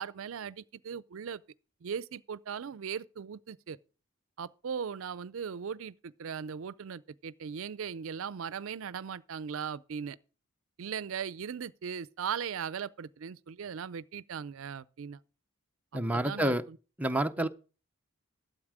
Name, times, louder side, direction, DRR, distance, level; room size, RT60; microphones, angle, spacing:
voice 1, 0.0-1.4 1.8-3.8 4.4-10.2 10.8-15.2 15.9-16.8 17.4-17.5, right 7 dB, 70° right, 0.4 m, -38 dB
voice 2, 15.9-16.6 17.0-17.5, right 1 dB, 5° right, 0.5 m, -28 dB
12.0 x 8.0 x 4.9 m
head